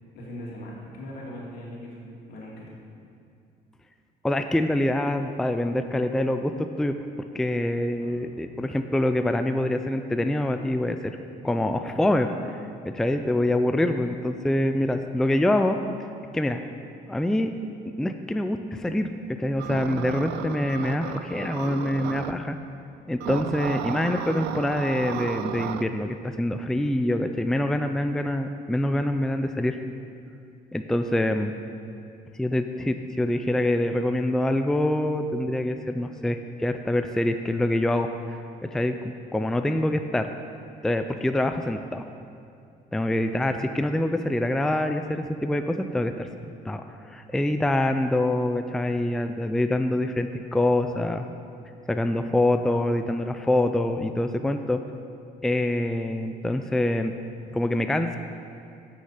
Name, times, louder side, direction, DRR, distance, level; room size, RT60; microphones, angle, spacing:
voice 1, 0.1-2.8 8.0-8.4 13.2-13.3, equal, 75° left, -4 dB, 2.6 m, -40 dB
voice 2, 4.2-6.9 7.3-11.2 11.4-12.6 12.8-15.8 16.3-16.6 17.0-17.5 18.0-22.6 23.1-29.8 30.7-31.5 32.3-40.3 40.8-42.1 42.9-46.3 46.6-51.2 51.9-54.8 55.4-57.1 57.5-58.2, left 1 dB, 5° left, 7 dB, 0.4 m, -25 dB
sound 1, 19.6-22.3 23.2-25.8, right 11 dB, 85° right, 0.4 m, -33 dB
9.5 x 6.5 x 6.6 m, 2.5 s
cardioid pair, 110°, 17 cm